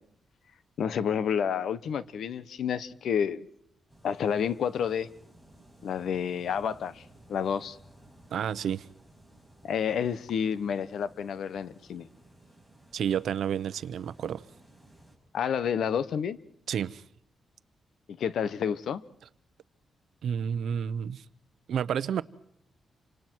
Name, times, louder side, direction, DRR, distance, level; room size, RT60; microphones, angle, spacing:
voice 1, 0.8-3.5 4.0-5.1 5.8-7.0 7.3-7.8 9.6-12.1 15.3-16.4 18.2-19.0, left 7 dB, 70° left, 1.0 m, -29 dB
sound 1, 3.9-15.2, right 1 dB, 10° left, 6.6 m, -57 dB
voice 2, 8.3-8.9 12.9-14.4 16.7-17.0 20.2-21.2 21.7-22.2, right 8 dB, 75° right, 0.8 m, -30 dB
29.0 x 26.0 x 4.6 m
wide cardioid pair, 135°, 0 cm